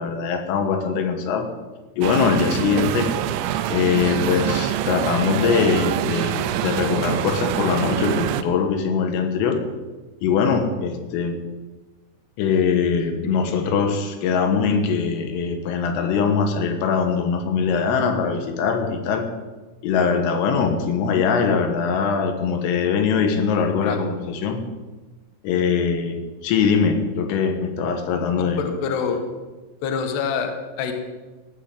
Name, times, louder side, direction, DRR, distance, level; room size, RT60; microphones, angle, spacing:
voice 1, 0.0-1.5 2.0-3.1 3.7-9.6 10.2-11.4 12.4-19.3 19.8-24.7 25.4-28.6, left 6 dB, 90° left, 5 dB, 4.2 m, -22 dB
sound 1, 2.0-8.4, right 11 dB, 85° right, 3.0 m, -25 dB
voice 2, 28.4-29.2 29.8-30.9, left 6 dB, 65° left, 5 dB, 3.3 m, -26 dB
15.5 x 9.9 x 7.9 m, 1.2 s
omnidirectional pair, 5.7 m